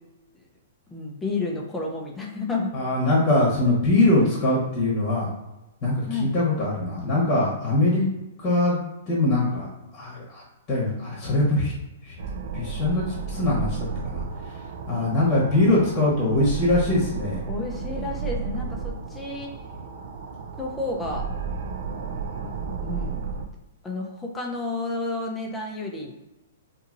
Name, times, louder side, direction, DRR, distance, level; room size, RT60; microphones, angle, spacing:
voice 1, 0.9-2.7 6.1-6.3 17.5-19.5 20.6-21.2 22.8-23.2 23.8-26.1, left 3 dB, 10° left, -1 dB, 0.5 m, -31 dB
voice 2, 2.7-5.3 5.8-8.1 8.4-8.8 9.1-9.7 9.9-10.4 10.7-11.7 12.0-12.1 12.5-14.2 14.9-17.4, left 2 dB, 30° left, -5 dB, 1.0 m, -22 dB
sound 1, 12.2-23.5, right 5 dB, 65° right, 0.4 m, -33 dB
2.8 x 2.7 x 2.5 m, 0.99 s
hypercardioid pair, 145°, 0 cm